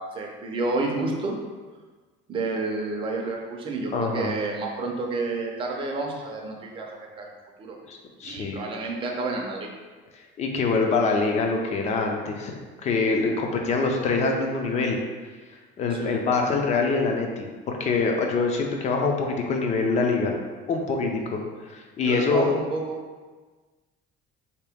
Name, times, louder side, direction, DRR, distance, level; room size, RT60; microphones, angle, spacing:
voice 1, 0.0-1.4 2.3-6.9 7.2-7.3 7.6-7.8 8.2-9.7 15.9-16.1 22.0-23.0, right 3 dB, 25° right, 0 dB, 0.5 m, -30 dB
voice 2, 3.9-4.3 7.9-8.6 10.1-15.0 15.8-20.3 20.7-21.4 21.7-22.5, left 4 dB, 35° left, 2 dB, 0.5 m, -25 dB
3.8 x 2.9 x 3.4 m, 1.4 s
cardioid pair, 170°, 20 cm